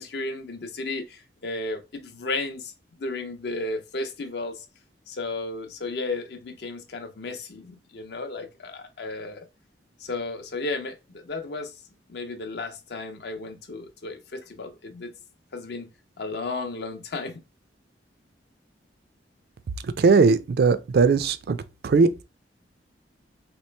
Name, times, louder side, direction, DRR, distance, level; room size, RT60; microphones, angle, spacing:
voice 1, 0.0-2.7 3.0-4.7 5.1-9.5 10.0-11.8 12.1-15.1 15.5-15.9 16.2-17.4, left 3 dB, 65° left, 0.6 m, -34 dB
voice 2, 20.0-21.6 21.8-22.2, right 4 dB, 55° right, 0.3 m, -19 dB
3.1 x 3.0 x 3.2 m
head